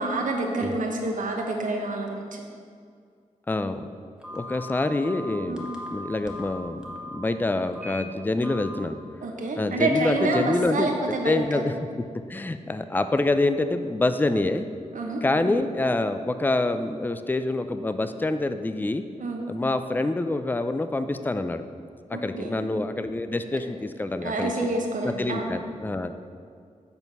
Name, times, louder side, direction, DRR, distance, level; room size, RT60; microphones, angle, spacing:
voice 1, 0.0-2.4 5.5-5.7 9.2-11.7 14.9-15.6 19.2-19.4 22.1-22.7 24.2-25.5, right 2 dB, 75° right, 1 dB, 1.1 m, -28 dB
voice 2, 3.5-3.9 4.3-5.7 5.9-9.0 9.6-12.0 12.3-14.7 15.2-19.0 19.5-21.6 22.2-24.5 25.0-26.2, left 2 dB, 15° left, 10 dB, 0.4 m, -26 dB
Telephone, 4.2-7.2 7.7-8.0 8.4-8.7, left 2 dB, 5° right, 1.3 m, -39 dB
8.0 x 4.6 x 5.4 m, 2.2 s
wide cardioid pair, 80°, 13 cm